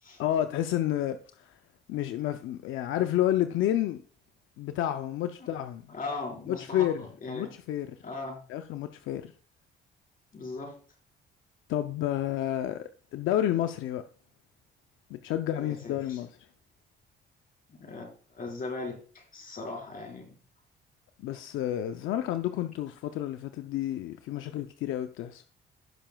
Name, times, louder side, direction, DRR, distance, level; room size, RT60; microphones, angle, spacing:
voice 1, 0.2-1.6 1.9-4.0 4.6-5.8 6.5-7.0 7.3-8.0 8.5-9.3 11.7-14.0 15.1-16.4 21.2-25.4, left 12 dB, 90° left, 0.6 m, -30 dB
voice 2, 5.9-7.5 8.0-8.4 10.3-10.8 15.6-16.2 17.8-20.3, left 3 dB, 45° left, 4.6 m, -39 dB
16.0 x 6.8 x 2.3 m
cardioid pair, 90°, 20 cm